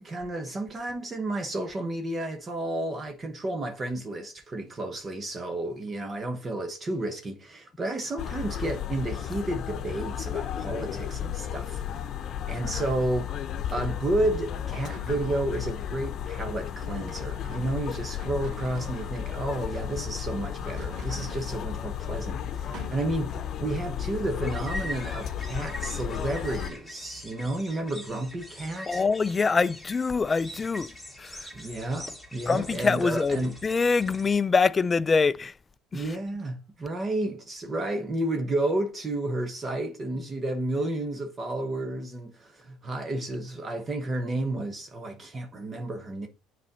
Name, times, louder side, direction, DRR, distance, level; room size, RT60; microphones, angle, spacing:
voice 1, 0.0-12.1 12.5-13.4 13.7-29.0 31.5-33.6 35.9-46.3, right 1 dB, 25° right, 1.1 m, -31 dB
sound 1, 8.2-26.7, left 9 dB, 50° left, 0.9 m, -34 dB
sound 2, 14.7-15.9 16.9-19.5 20.5-21.6 22.7-22.9, right 6 dB, 60° right, 2.6 m, -48 dB
sound 3, 19.5-34.4, equal, ahead, 2.4 m, -44 dB
voice 2, 28.9-30.9 31.2-31.5 32.5-35.5 35.9-36.0, left 4 dB, 25° left, 0.4 m, -24 dB
7.2 x 4.2 x 5.4 m
supercardioid pair, 105°, 0 cm